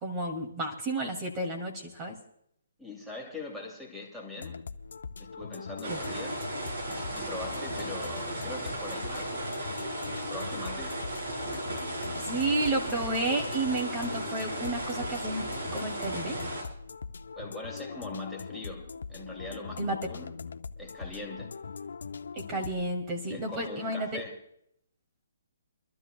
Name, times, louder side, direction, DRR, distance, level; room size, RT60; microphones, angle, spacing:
voice 1, 0.0-2.2 5.9-6.0 12.2-16.4 19.8-20.0 22.3-24.2, right 2 dB, 25° right, 2.3 m, -31 dB
voice 2, 2.8-4.6 5.2-6.4 6.9-9.5 10.3-11.0 17.4-20.4 20.8-21.5 23.3-24.4, left 2 dB, ahead, 2.4 m, -42 dB
sound 1, 4.4-22.9, left 5 dB, 80° left, 0.7 m, -41 dB
sound 2, 5.8-16.6, right 1 dB, 70° right, 7.4 m, -36 dB
29.0 x 12.5 x 2.2 m
hypercardioid pair, 150°, 0 cm